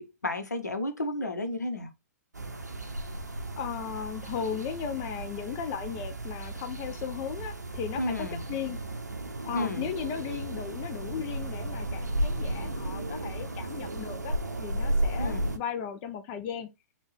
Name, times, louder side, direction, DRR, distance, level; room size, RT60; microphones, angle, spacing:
voice 1, 0.0-1.9 8.0-8.4 9.5-9.9 15.2-15.5, left 1 dB, 85° left, 0.7 m, -32 dB
sound 1, 2.3-15.6, right 1 dB, 85° right, 0.5 m, -34 dB
voice 2, 3.6-8.8 9.4-16.7, left 8 dB, 30° left, 0.4 m, -36 dB
3.5 x 2.3 x 3.2 m
figure-of-eight pair, 115°, 9 cm